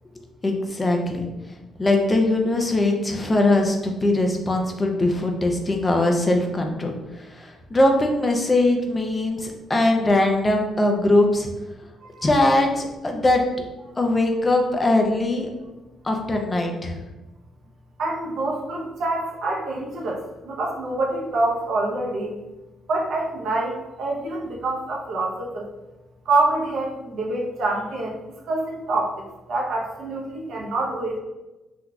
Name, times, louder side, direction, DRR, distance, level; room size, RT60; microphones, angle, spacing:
voice 1, 0.4-1.3 1.8-6.9 7.2-11.5 12.2-13.4 14.0-15.5 16.0-17.0, left 2 dB, 25° left, 2 dB, 0.5 m, -21 dB
voice 2, 18.0-22.4 22.9-25.7 26.3-28.2 28.5-29.1 29.5-31.2, right 2 dB, 70° right, -1 dB, 0.8 m, -26 dB
3.7 x 2.8 x 2.3 m, 1.0 s
cardioid pair, 90°, 0 cm